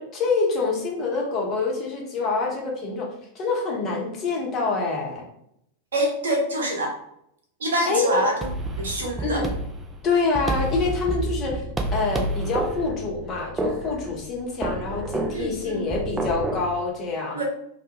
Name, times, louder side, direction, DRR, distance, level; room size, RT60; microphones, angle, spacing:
voice 1, 0.0-3.1 3.3-5.2 7.9-8.3 9.2-9.5 10.0-11.6 11.9-17.4, left 4 dB, 30° left, -1 dB, 0.7 m, -26 dB
voice 2, 5.9-6.9 7.6-8.5 8.8-9.4 15.3-15.9 17.3-17.4, right 1 dB, 65° right, 0 dB, 0.7 m, -25 dB
sound 1, 8.4-16.7, right 2 dB, 15° right, 0.3 m, -30 dB
2.2 x 2.0 x 2.8 m, 0.74 s
figure-of-eight pair, 90°, 0 cm